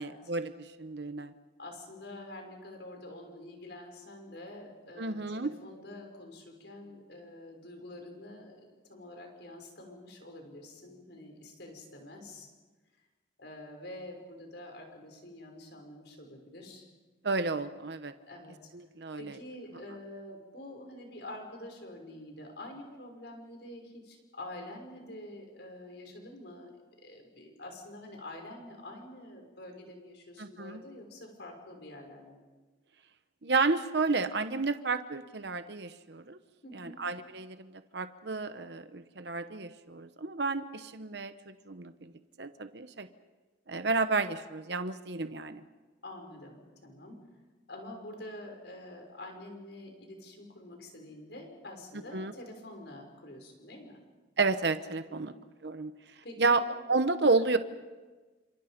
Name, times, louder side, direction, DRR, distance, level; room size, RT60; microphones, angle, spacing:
voice 1, 0.0-1.3 5.0-5.5 17.2-18.1 18.7-19.3 30.4-30.8 33.4-36.4 36.7-42.1 42.4-43.1 43.7-45.6 52.1-52.3 54.4-55.3 55.6-55.9 56.4-56.6 56.9-57.6, right 3 dB, 60° right, 10 dB, 1.0 m, -31 dB
voice 2, 1.6-12.5 13.4-16.8 18.3-18.6 19.1-26.7 27.0-32.4 36.6-37.0 46.0-47.2 47.7-54.0 55.1-55.4 56.2-56.6, left 1 dB, 65° left, 3 dB, 6.2 m, -47 dB
29.5 x 27.0 x 5.2 m, 1.3 s
head